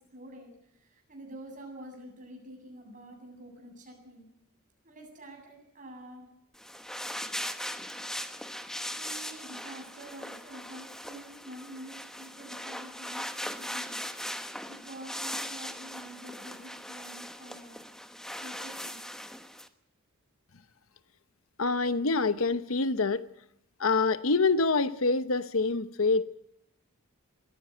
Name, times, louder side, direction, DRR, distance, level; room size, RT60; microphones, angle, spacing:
voice 1, 0.0-4.3 4.8-6.3 8.9-14.1 14.7-17.9 18.4-19.0, right 1 dB, 35° right, 2 dB, 7.9 m, -47 dB
sound 1, 6.5-19.7, left 1 dB, ahead, 1.1 m, -39 dB
voice 2, 21.6-23.3 23.8-26.2, left 3 dB, 70° left, 13 dB, 1.0 m, -26 dB
22.0 x 15.5 x 9.0 m, 0.78 s
head